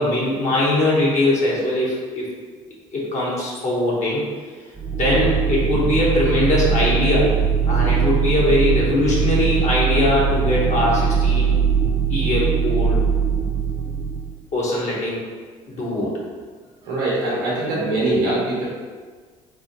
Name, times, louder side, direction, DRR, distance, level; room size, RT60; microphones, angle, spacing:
voice 1, 0.0-2.3 2.9-4.2 5.0-7.3 7.7-11.6 12.1-13.0 14.5-15.2 15.7-16.1, left 1 dB, 50° left, -6 dB, 1.3 m, -21 dB
sound 1, 4.8-14.4, right 6 dB, 25° right, 0.3 m, -21 dB
voice 2, 16.8-18.6, right 2 dB, 80° right, -6 dB, 1.0 m, -22 dB
3.5 x 2.1 x 4.0 m, 1.5 s
hypercardioid pair, 60°, 16 cm